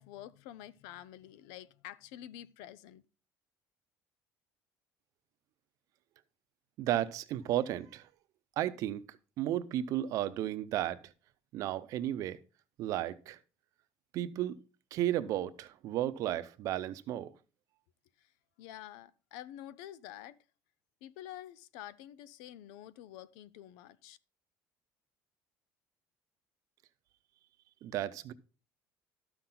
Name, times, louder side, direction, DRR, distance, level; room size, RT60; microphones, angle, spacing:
voice 1, 0.0-3.0 18.2-18.3 18.6-20.4 21.0-24.2, left 12 dB, 85° left, 0.5 m, -48 dB
voice 2, 6.8-8.1 8.6-9.0 9.4-11.1 11.5-12.4 12.8-13.4 14.1-14.6 14.9-17.3 27.8-28.3, right 12 dB, 60° right, 0.7 m, -33 dB
13.0 x 5.9 x 3.9 m
cardioid pair, 130°, 6 cm